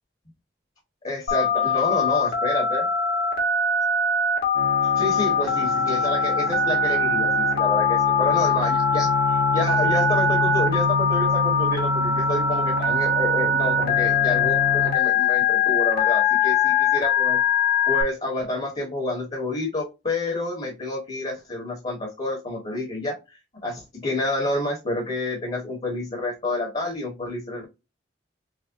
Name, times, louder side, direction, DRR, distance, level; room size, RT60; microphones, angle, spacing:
voice 1, 1.0-2.9 4.9-17.4 17.8-27.7, left 2 dB, 35° left, 1 dB, 1.3 m, -29 dB
Telephone, 1.3-18.0, left 4 dB, 60° left, 1.6 m, -22 dB
sound 1, 4.5-14.9, left 1 dB, 60° right, 1.0 m, -29 dB
6.3 x 2.2 x 2.5 m, 0.24 s
head